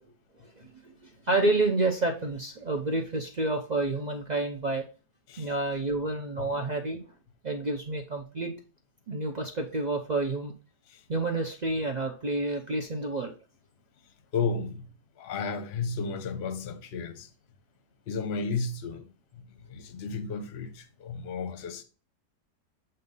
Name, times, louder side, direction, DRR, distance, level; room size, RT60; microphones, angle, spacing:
voice 1, 0.6-1.0 1.2-4.8 5.4-7.0 7.4-8.5 9.1-10.5 11.1-13.3, right 2 dB, 65° right, 0.4 m, -29 dB
voice 2, 14.3-17.3 18.1-21.8, left 4 dB, 50° left, 0.9 m, -33 dB
7.8 x 2.7 x 5.3 m
omnidirectional pair, 1.8 m